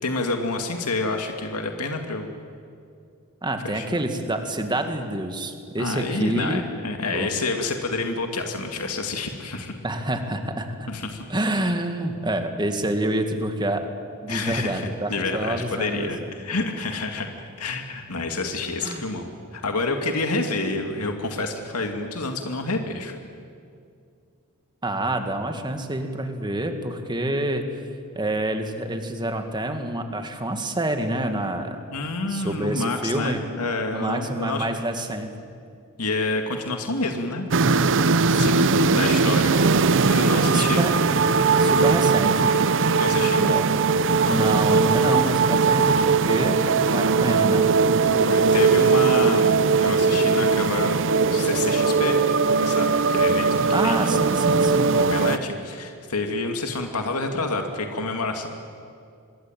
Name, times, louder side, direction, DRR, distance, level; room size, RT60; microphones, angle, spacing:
voice 1, 0.0-2.3 3.6-3.9 5.8-9.7 10.9-11.3 14.3-23.1 31.9-34.7 36.0-37.9 38.3-38.7 39.0-39.7 40.1-40.9 43.0-43.6 48.0-51.0 51.3-52.2 52.6-54.1 54.9-58.5, left 3 dB, 85° left, 4 dB, 2.3 m, -28 dB
voice 2, 3.4-6.6 7.1-7.3 9.8-10.9 11.3-13.9 14.2-16.1 18.8-19.1 24.8-27.6 28.1-31.8 32.3-33.4 33.9-35.3 38.3-39.4 40.5-40.9 41.6-42.5 43.4-43.7 44.2-47.7 53.7-54.9, right 1 dB, 20° right, 6 dB, 2.2 m, -27 dB
sound 1, 37.5-55.4, right 4 dB, 60° right, 0.8 m, -20 dB
26.0 x 21.5 x 9.0 m, 2.4 s
head